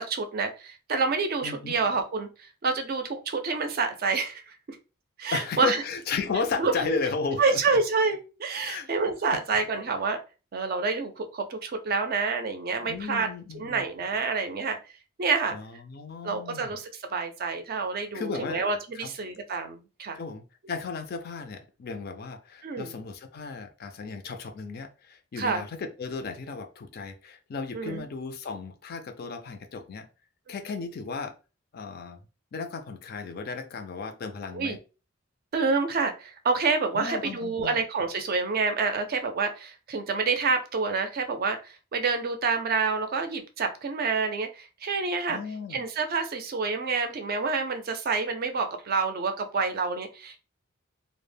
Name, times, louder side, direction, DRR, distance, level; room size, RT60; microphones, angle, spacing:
voice 1, 0.0-4.8 5.2-5.8 6.6-7.0 7.4-10.2 10.5-13.3 13.5-14.8 15.2-15.6 16.2-20.2 22.6-22.9 25.4-25.6 27.7-28.0 34.5-34.8 35.5-45.4 45.7-50.4, right 4 dB, 45° right, 6 dB, 0.4 m, -28 dB
voice 2, 1.4-1.8 5.3-7.6 8.6-8.9 12.8-13.9 15.5-16.7 18.1-18.6 18.9-19.1 20.1-30.1 30.5-31.3 31.7-32.2 32.5-34.8 36.9-37.8 45.3-45.8, left 5 dB, 50° left, 7 dB, 0.4 m, -34 dB
2.0 x 2.0 x 3.3 m, 0.32 s
head